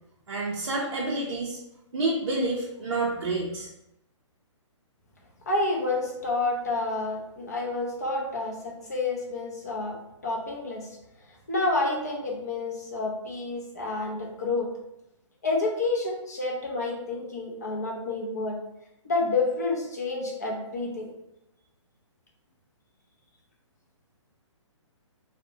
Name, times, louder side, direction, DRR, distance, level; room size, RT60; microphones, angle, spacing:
voice 1, 0.3-1.6 1.9-3.7, right 2 dB, 55° right, -4 dB, 0.4 m, -28 dB
voice 2, 5.5-10.0 10.2-11.0 11.5-14.7 15.4-18.6 19.0-21.1, left 3 dB, 35° left, -1 dB, 0.4 m, -29 dB
2.5 x 2.0 x 2.7 m, 0.87 s
hypercardioid pair, 180°, 16 cm